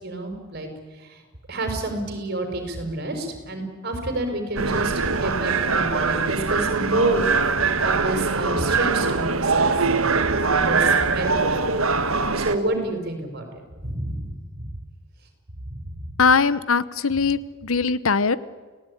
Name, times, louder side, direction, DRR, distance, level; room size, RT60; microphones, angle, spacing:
voice 1, 0.0-0.7 1.1-1.2 1.5-7.6 7.8-10.2 10.5-11.8 12.3-14.7 15.7-16.0, right 2 dB, 45° right, 5 dB, 5.6 m, -29 dB
sound 1, 4.6-12.6, right 4 dB, 70° right, 1.6 m, -22 dB
voice 2, 16.2-18.4, left 5 dB, 75° left, 17 dB, 0.9 m, -20 dB
29.5 x 17.5 x 10.0 m, 1.4 s
head